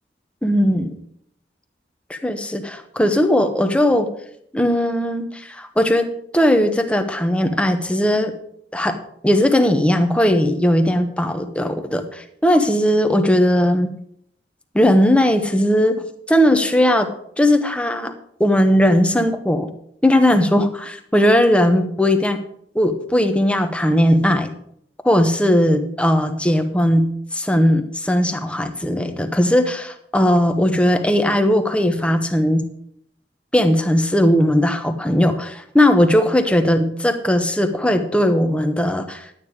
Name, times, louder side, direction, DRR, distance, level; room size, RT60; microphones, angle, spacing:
voice 1, 0.4-1.0 2.1-4.1 4.5-6.1 6.3-8.3 8.7-9.0 9.2-13.9 14.7-17.1 17.4-18.1 18.4-19.7 20.0-22.4 22.7-24.5 25.0-32.7 33.5-39.3, equal, 5° left, 6 dB, 1.0 m, -18 dB
11.5 x 9.1 x 4.9 m, 0.70 s
head